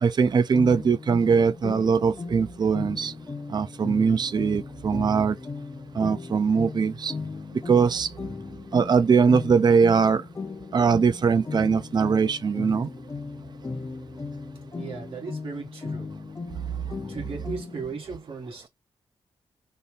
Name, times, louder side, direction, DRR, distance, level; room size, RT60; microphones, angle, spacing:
voice 1, 0.0-3.1 3.5-5.4 6.0-7.1 7.7-8.1 8.7-10.2 10.7-12.9, right 5 dB, 40° right, 0.5 m, -21 dB
sound 1, 0.5-18.0, left 4 dB, 25° left, 0.7 m, -37 dB
voice 2, 14.8-16.2 17.1-18.7, right 4 dB, 60° right, 2.0 m, -36 dB
4.2 x 2.6 x 3.4 m
wide cardioid pair, 135°, 11 cm